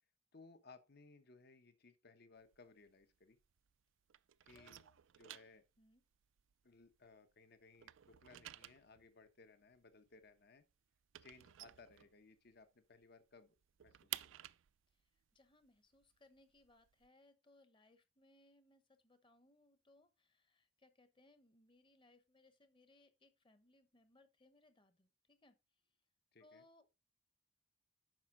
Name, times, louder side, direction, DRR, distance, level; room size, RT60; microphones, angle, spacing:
voice 1, 0.3-3.4 4.4-4.8 5.2-5.6 6.6-10.6 11.2-13.6 13.8-14.4 26.3-26.6, left 3 dB, 55° left, 1.0 m, -62 dB
sound 1, 2.4-3.8 4.1-7.3 7.6-12.6 12.9-13.0 13.3-17.1, right 14 dB, 75° right, 0.4 m, -53 dB
voice 2, 4.5-5.0 5.8-6.0 14.9-25.6 26.4-26.9, left 2 dB, 25° left, 1.0 m, -69 dB
9.3 x 6.0 x 3.9 m
head